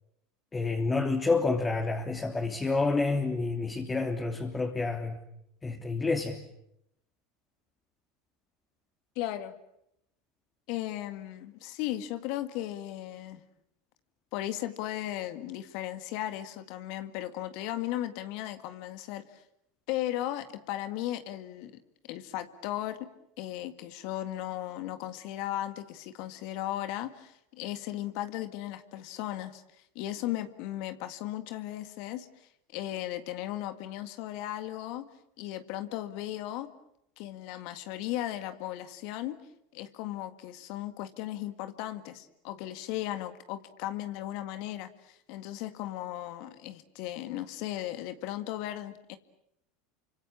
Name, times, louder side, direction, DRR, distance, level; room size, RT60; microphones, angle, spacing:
voice 1, 0.5-5.2 5.6-6.4, left 3 dB, 20° left, 2 dB, 3.3 m, -29 dB
voice 2, 9.2-9.6 10.7-13.4 14.3-19.4 19.9-21.8 22.1-23.1 23.4-29.6 30.0-35.1 35.4-36.7 37.2-39.4 39.7-49.2, left 14 dB, 60° left, 10 dB, 1.9 m, -36 dB
29.5 x 26.0 x 7.4 m, 0.79 s
hypercardioid pair, 85°, 0 cm